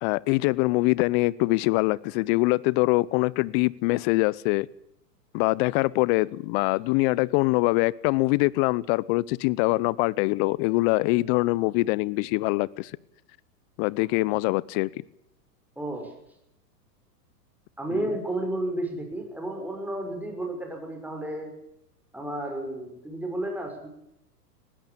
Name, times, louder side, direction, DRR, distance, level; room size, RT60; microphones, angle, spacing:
voice 1, 0.0-4.7 5.3-12.9 13.8-14.9 17.9-18.1, left 22 dB, 40° left, 23 dB, 0.8 m, -24 dB
voice 2, 15.8-16.1 17.8-21.5 22.1-23.9, right 1 dB, 5° right, 2 dB, 6.2 m, -32 dB
20.0 x 16.5 x 8.7 m, 0.80 s
hypercardioid pair, 120°, 48 cm